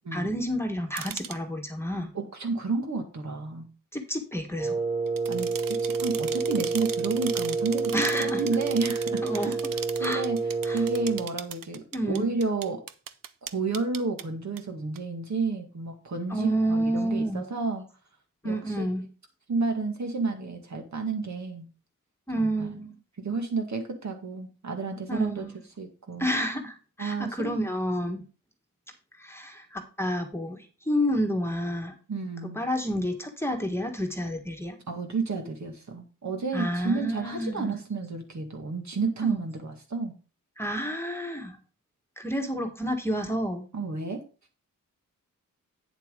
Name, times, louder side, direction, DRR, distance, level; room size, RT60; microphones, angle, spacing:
voice 1, 0.1-2.1 3.9-4.8 7.9-8.4 9.2-9.6 10.0-10.2 10.6-10.8 11.9-12.3 16.3-17.4 18.4-19.1 22.3-22.9 25.1-25.6 26.2-28.2 29.2-31.9 32.5-34.8 36.5-37.7 39.2-39.4 40.6-41.6 42.2-43.7, equal, 5° left, 3 dB, 1.5 m, -29 dB
sound 1, 1.0-1.4 5.1-14.2 14.6-14.7 15.0-15.1, right 9 dB, 75° right, 0.7 m, -38 dB
voice 2, 2.1-3.7 5.3-7.9 8.2-9.5 10.0-10.4 10.7-12.8 13.4-17.8 18.4-18.9 19.5-21.7 22.4-22.7 23.2-25.5 25.8-26.3 27.0-27.5 32.1-32.6 34.9-40.2 43.7-44.2, right 4 dB, 55° right, 3 dB, 2.1 m, -31 dB
Wind instrument woodwind instrument, 4.6-11.3, right 4 dB, 15° right, 2.9 m, -29 dB
8.8 x 7.3 x 3.8 m, 0.36 s
wide cardioid pair, 90°, 33 cm